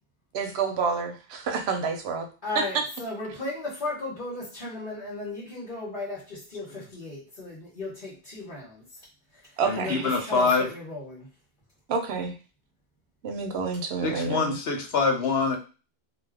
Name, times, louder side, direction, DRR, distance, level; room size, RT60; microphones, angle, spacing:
voice 1, 0.3-2.3 2.6-2.7 9.6-10.3 11.9-12.3 13.2-14.6, right 5 dB, 85° right, 5 dB, 0.9 m, -29 dB
voice 2, 2.4-8.8 9.4-11.3, left 2 dB, 50° left, -7 dB, 1.1 m, -35 dB
voice 3, 9.6-10.7 14.0-15.6, left 4 dB, 80° left, 3 dB, 0.9 m, -25 dB
2.6 x 2.3 x 3.3 m, 0.33 s
omnidirectional pair, 1.1 m